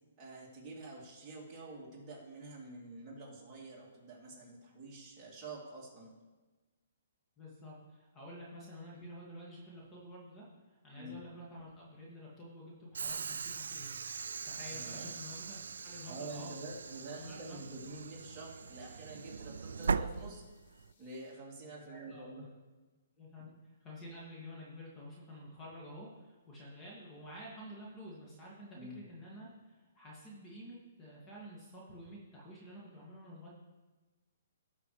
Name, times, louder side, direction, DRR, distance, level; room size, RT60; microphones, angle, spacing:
voice 1, 0.2-6.1 10.9-11.2 14.7-15.1 16.1-20.4 21.0-22.5 23.4-23.5 28.7-29.0, right 2 dB, 20° right, -5 dB, 2.8 m, -47 dB
voice 2, 7.4-10.5 10.8-13.9 14.4-15.6 15.8-16.5 17.2-17.6 21.9-22.3 23.2-33.5, equal, 20° left, -4 dB, 2.1 m, -50 dB
Train / Sliding door, 12.9-20.9, right 5 dB, 85° right, 0.3 m, -40 dB
sound 1, 13.1-21.6, left 4 dB, 60° left, 1.9 m, -66 dB
17.5 x 6.0 x 3.2 m, 1.2 s
hypercardioid pair, 150°, 0 cm